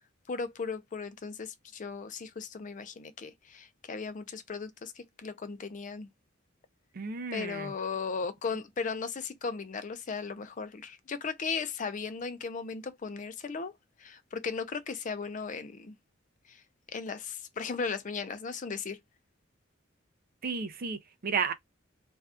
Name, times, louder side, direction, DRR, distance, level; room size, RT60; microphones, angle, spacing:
voice 1, 0.3-6.1 7.3-13.7 14.0-15.9 16.5-16.6 16.9-19.0, left 5 dB, 40° left, 0.5 m, -36 dB
voice 2, 6.9-7.7 20.4-21.5, right 5 dB, 50° right, 0.5 m, -33 dB
2.6 x 2.3 x 3.4 m
head